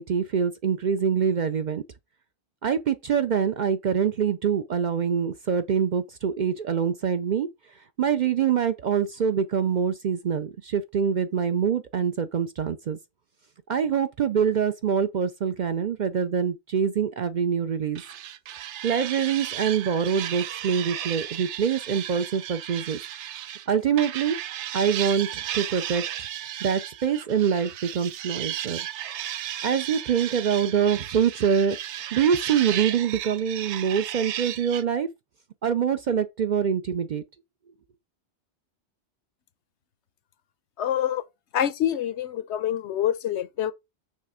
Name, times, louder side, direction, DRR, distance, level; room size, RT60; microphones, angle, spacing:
voice 1, 0.0-1.8 2.6-7.5 8.0-13.0 13.7-18.0 18.8-23.0 23.7-24.4 24.7-26.0 26.6-28.9 29.6-31.8 32.1-35.1 35.6-37.2, right 7 dB, 55° right, 0.5 m, -25 dB
sound 1, 17.9-23.7 24.0-34.8, right 11 dB, 85° right, 0.9 m, -34 dB
voice 2, 40.8-41.2 41.5-43.7, left 10 dB, 80° left, 0.9 m, -26 dB
6.4 x 3.3 x 4.9 m
omnidirectional pair, 1.2 m